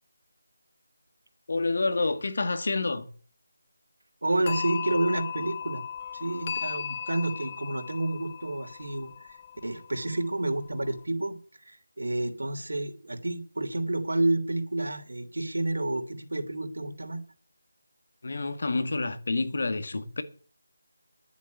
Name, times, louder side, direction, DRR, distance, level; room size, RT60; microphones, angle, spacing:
voice 1, 1.5-3.1 18.2-20.2, left 3 dB, 50° left, 1.9 m, -28 dB
voice 2, 4.2-5.8 6.1-9.4 9.6-17.2, right 2 dB, 85° right, 3.1 m, -30 dB
sound 1, 4.4-11.0, left 8 dB, 25° left, 0.5 m, -37 dB
11.0 x 7.2 x 9.4 m
figure-of-eight pair, 175°, 0 cm